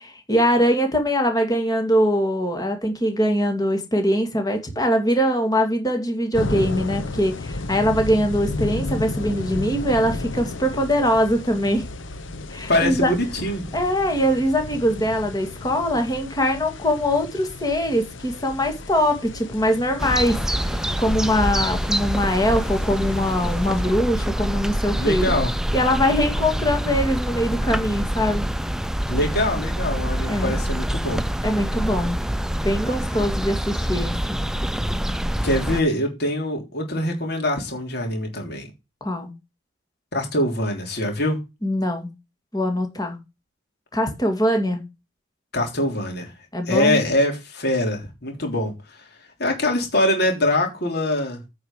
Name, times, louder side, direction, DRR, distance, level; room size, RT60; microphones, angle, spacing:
voice 1, 0.0-11.9 12.5-13.1 13.7-20.4 21.0-25.3 25.7-28.4 30.3-30.5 31.4-32.2 32.6-34.4 39.0-39.3 41.6-42.1 42.5-43.2 43.9-44.8 46.5-47.0, equal, 20° left, 2.4 m, -22 dB
sound 1, 6.3-23.8, left 2 dB, 70° left, 1.0 m, -33 dB
voice 2, 12.7-13.6 24.9-25.5 29.1-31.2 35.4-38.7 40.1-41.4 45.5-46.3 46.7-49.0 49.4-51.4, left 1 dB, 55° left, 3.3 m, -23 dB
sound 2, 20.0-35.8, equal, 5° right, 0.5 m, -25 dB
9.3 x 5.0 x 6.8 m
head